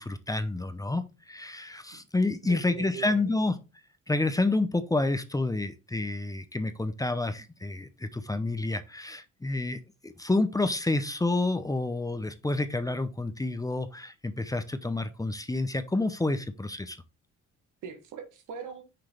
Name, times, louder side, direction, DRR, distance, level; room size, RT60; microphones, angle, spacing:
voice 1, 0.0-3.6 4.1-17.0, left 2 dB, 10° left, 0.6 m, -29 dB
voice 2, 2.4-3.4 17.8-18.8, right 6 dB, 85° right, 1.4 m, -41 dB
5.9 x 3.2 x 5.0 m
cardioid pair, 90°, 30 cm